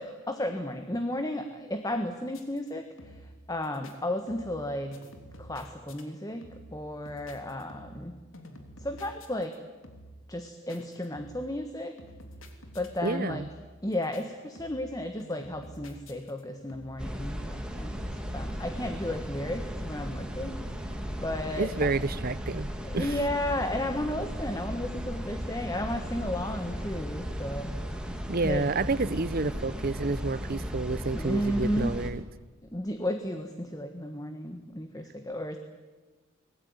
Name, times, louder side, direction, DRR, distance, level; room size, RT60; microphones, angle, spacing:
voice 1, 0.0-2.8 3.5-4.9 5.4-6.4 6.7-8.1 8.8-9.5 10.3-11.9 12.7-13.4 13.8-20.6 21.2-21.9 22.8-27.7 28.4-28.7 31.1-31.9 32.7-35.6, left 1 dB, 15° left, 6 dB, 1.5 m, -33 dB
sound 1, 2.3-2.7 3.0-3.4 3.6-3.9 4.3-4.7 4.9-6.0 6.4-6.8 7.1-8.1 8.3-9.6 9.8-10.2 10.7-11.5 12.0-13.0 13.3-13.7 13.9-14.2 14.6-14.9 15.2-16.4 16.7-17.1, equal, 65° left, 3.4 m, -49 dB
voice 2, 13.0-13.5 21.6-23.2 28.3-32.2, right 3 dB, 45° right, 18 dB, 0.7 m, -30 dB
sound 2, 17.0-32.1, equal, 5° right, 2.4 m, -36 dB
25.5 x 19.5 x 9.7 m, 1.3 s
head